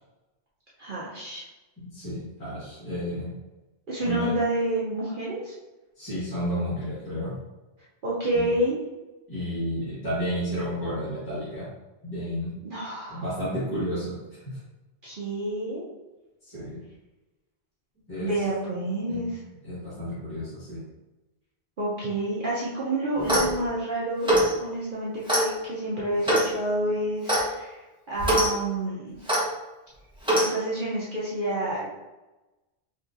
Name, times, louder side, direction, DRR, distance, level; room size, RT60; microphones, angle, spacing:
voice 1, 0.8-1.4 3.9-5.5 8.0-8.8 12.6-13.2 15.0-15.9 18.2-19.4 21.8-24.3 24.6-27.8 28.1-29.2 30.3-31.9, right 1 dB, 50° right, -7 dB, 0.9 m, -29 dB
voice 2, 1.8-3.3 4.0-4.3 6.0-7.3 8.3-8.5 9.3-11.7 12.0-12.5 13.1-14.2 14.4-14.6 16.4-16.8 18.1-18.3 19.1-19.3 19.6-20.8, equal, 20° left, -14 dB, 1.6 m, -31 dB
Clock, 23.2-23.6 24.2-24.5 25.3-25.5 26.2-26.5 27.3-27.5 28.2-28.5 29.3-29.4 30.2-30.5, right 1 dB, 5° right, 0.8 m, -22 dB
4.5 x 2.9 x 2.5 m, 1.1 s
omnidirectional pair, 1.2 m